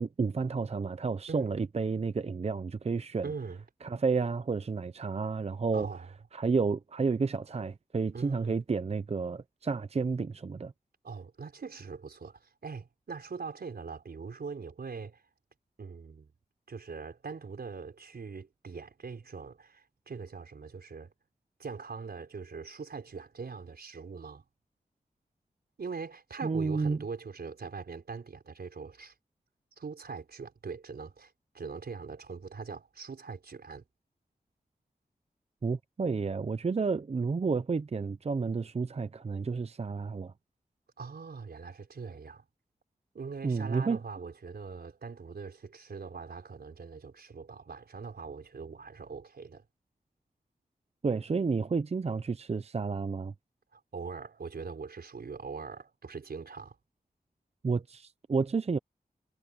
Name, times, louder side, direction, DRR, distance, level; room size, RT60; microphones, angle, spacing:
voice 1, 0.0-3.3 3.8-5.9 6.3-10.7 26.4-27.0 35.6-40.3 43.4-44.0 51.0-53.3 57.6-58.8, right 4 dB, 40° right, 0.6 m, -31 dB
voice 2, 3.2-3.6 5.7-6.1 8.1-8.6 11.0-15.2 15.8-16.3 16.7-21.1 21.6-24.4 25.8-29.1 29.8-33.8 41.0-42.4 43.1-49.6 53.7-56.8, right 5 dB, 85° right, 4.8 m, -42 dB
wide cardioid pair, 110°, 16 cm